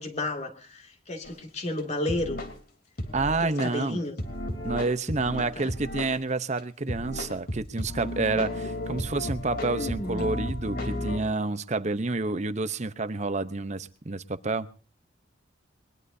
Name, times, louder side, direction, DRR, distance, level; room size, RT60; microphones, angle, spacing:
voice 1, 0.0-2.4 3.3-4.2 5.4-5.7 8.8-8.9 9.8-10.3, left 2 dB, 35° left, 4 dB, 2.4 m, -32 dB
sound 1, 1.2-1.3 1.8-1.9 2.1-2.6 3.0-3.7 4.2-6.2 6.6-6.7 6.9-11.2, left 1 dB, 55° left, 3.4 m, -33 dB
voice 2, 3.1-4.0 4.6-14.7, right 3 dB, 40° right, 12 dB, 0.8 m, -29 dB
21.5 x 21.5 x 2.7 m, 0.38 s
head